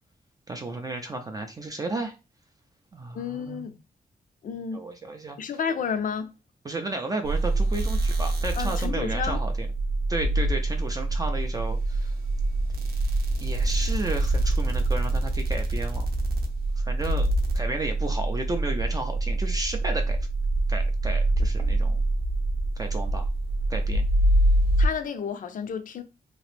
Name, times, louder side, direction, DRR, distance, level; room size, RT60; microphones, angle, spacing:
voice 1, 0.5-2.1 2.9-3.7 4.7-5.6 6.6-9.7 10.1-12.2 13.4-16.1 16.8-17.3 17.5-20.2 20.7-22.0 22.8-23.3 23.7-24.0, right 2 dB, 25° right, 0.3 m, -33 dB
voice 2, 3.1-3.7 4.4-4.8 5.4-6.3 8.6-9.4 24.8-26.0, left 6 dB, 60° left, 0.4 m, -31 dB
sound 1, 7.2-24.9, right 2 dB, 85° right, 0.7 m, -25 dB
2.9 x 2.4 x 3.2 m
wide cardioid pair, 160°, 16 cm